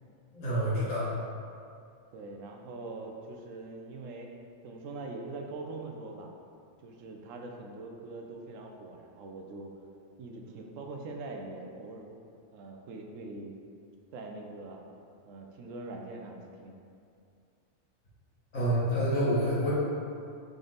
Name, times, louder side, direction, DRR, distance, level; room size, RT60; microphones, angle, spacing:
voice 1, 0.3-1.1 18.5-19.7, equal, 90° left, -9 dB, 1.8 m, -27 dB
voice 2, 2.1-4.3 4.6-6.3 6.8-9.7 10.2-12.2 12.5-13.6 14.1-14.8 15.3-16.8, right 3 dB, 85° right, 2 dB, 0.9 m, -43 dB
3.8 x 3.4 x 3.8 m, 2.4 s
omnidirectional pair, 1.3 m